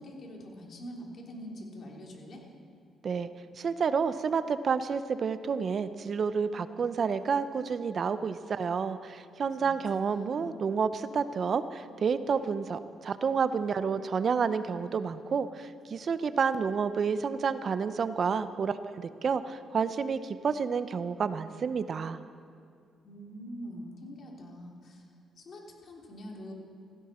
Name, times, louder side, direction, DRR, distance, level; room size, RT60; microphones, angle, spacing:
voice 1, 0.0-2.4 9.6-10.5 23.0-25.0 25.4-26.5, equal, 55° left, -1 dB, 3.2 m, -44 dB
voice 2, 3.6-22.2, right 6 dB, 50° right, 12 dB, 0.6 m, -30 dB
16.0 x 16.0 x 4.3 m, 2.3 s
cardioid pair, 90°, 0 cm